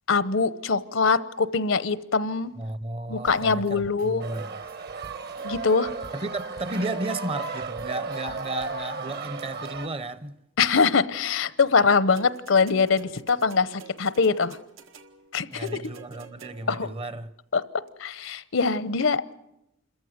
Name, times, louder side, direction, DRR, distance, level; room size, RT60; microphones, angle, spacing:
voice 1, 0.1-2.5 3.1-4.2 5.4-5.9 10.6-14.6 15.3-15.7 16.7-16.9 17.5-17.6 18.0-19.2, left 5 dB, 75° left, 0.8 m, -23 dB
voice 2, 2.5-4.6 6.1-10.4 15.5-17.3, right 2 dB, 30° right, 0.8 m, -33 dB
sound 1, 3.3-8.8, right 1 dB, 70° right, 4.9 m, -50 dB
sound 2, 4.2-9.9, right 4 dB, 55° right, 1.2 m, -34 dB
sound 3, 12.2-16.9 17.9-18.0, right 6 dB, 85° right, 1.8 m, -48 dB
27.5 x 14.5 x 9.4 m
head